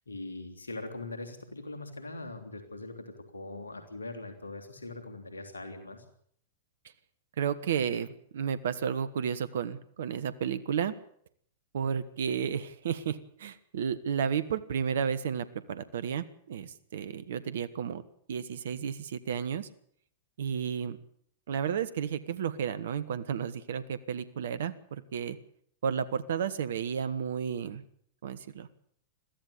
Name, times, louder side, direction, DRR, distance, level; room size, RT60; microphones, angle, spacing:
voice 1, 0.1-6.0, left 2 dB, 90° left, 5 dB, 3.3 m, -41 dB
voice 2, 7.4-10.9 11.7-18.0 18.3-19.7 20.4-21.0 21.5-25.4 25.8-27.8 28.2-28.7, right 7 dB, 70° right, 15 dB, 1.4 m, -32 dB
22.5 x 15.0 x 8.6 m, 0.64 s
hypercardioid pair, 105°, 0 cm